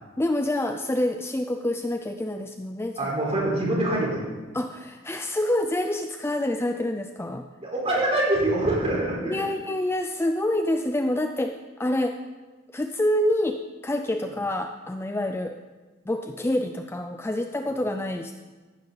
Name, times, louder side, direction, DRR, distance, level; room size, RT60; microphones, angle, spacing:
voice 1, 0.2-3.0 4.5-7.5 9.2-12.2 12.7-15.6 16.1-18.3, left 1 dB, 10° left, 6 dB, 0.4 m, -27 dB
voice 2, 3.0-4.3 7.6-9.4, right 1 dB, 30° right, -4 dB, 4.3 m, -24 dB
14.5 x 12.0 x 4.0 m, 1.3 s
head